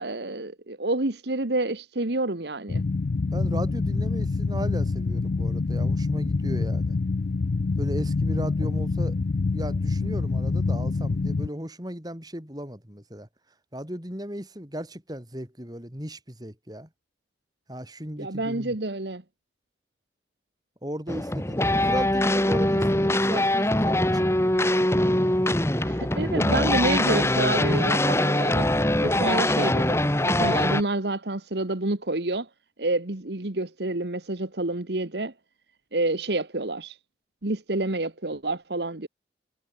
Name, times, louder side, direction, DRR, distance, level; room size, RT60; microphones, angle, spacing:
voice 1, 0.0-2.8 18.2-19.2 25.8-28.7 29.0-32.5 32.8-35.3 35.9-37.0 37.4-39.1, right 2 dB, 70° right, 1.7 m, -28 dB
sound 1, 2.7-11.5, left 3 dB, 55° left, 0.5 m, -26 dB
voice 2, 3.3-7.0 7.8-9.2 9.5-13.3 13.7-16.9 17.7-18.7 20.8-24.8, equal, 20° right, 4.8 m, -36 dB
sound 2, 21.1-30.8, left 1 dB, 15° left, 1.6 m, -23 dB
head